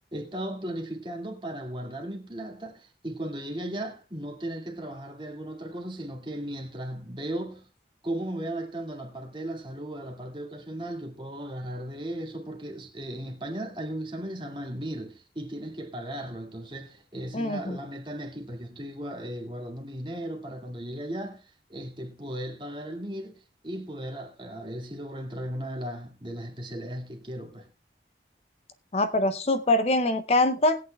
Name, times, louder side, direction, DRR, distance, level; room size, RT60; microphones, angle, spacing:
voice 1, 0.1-7.7 8.0-27.7, right 1 dB, 25° right, 2.0 m, -36 dB
voice 2, 17.3-17.8 28.9-30.8, left 2 dB, 35° left, 0.5 m, -24 dB
20.0 x 8.6 x 2.2 m
head